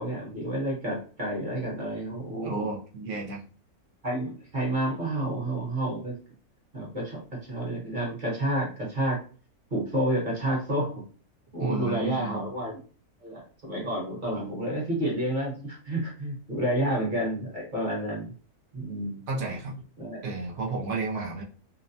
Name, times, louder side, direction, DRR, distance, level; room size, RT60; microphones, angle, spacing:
voice 1, 0.0-2.7 4.0-6.1 6.7-9.2 9.7-11.0 11.5-12.8 13.2-18.3 18.7-19.2 20.0-20.2, right 1 dB, 40° right, -3 dB, 0.9 m, -30 dB
voice 2, 2.4-3.4 11.6-12.5 19.3-19.8 20.2-21.4, right 3 dB, 65° right, -1 dB, 0.8 m, -32 dB
2.6 x 2.1 x 2.6 m, 0.39 s
omnidirectional pair, 1.6 m